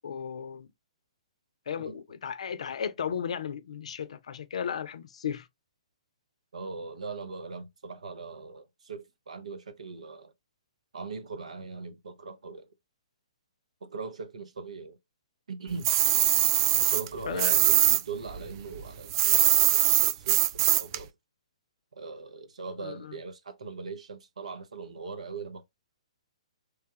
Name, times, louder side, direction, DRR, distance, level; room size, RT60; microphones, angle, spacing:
voice 1, 0.0-0.7 1.7-5.5 17.2-17.6 22.8-23.2, left 7 dB, 70° left, 0.5 m, -35 dB
voice 2, 6.5-10.3 10.9-12.7 13.8-15.0 15.5-15.9 16.8-21.1 22.0-25.7, right 4 dB, 80° right, 0.8 m, -40 dB
sound 1, 15.8-18.0 18.3-21.0, right 13 dB, 40° right, 0.3 m, -22 dB
3.4 x 2.3 x 2.8 m
hypercardioid pair, 135°, 4 cm